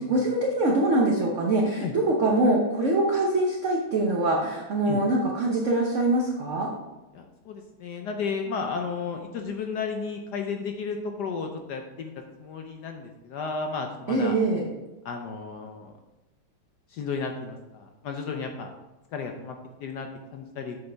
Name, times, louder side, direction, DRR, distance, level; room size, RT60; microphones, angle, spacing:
voice 1, 0.0-6.7 14.1-14.6, right 2 dB, 50° right, -1 dB, 0.9 m, -24 dB
voice 2, 7.1-12.1 12.4-14.4 15.0-15.9 16.9-18.7 19.1-19.6 19.8-20.8, left 5 dB, 65° left, 4 dB, 1.1 m, -33 dB
8.1 x 6.8 x 3.4 m, 1.1 s
omnidirectional pair, 2.3 m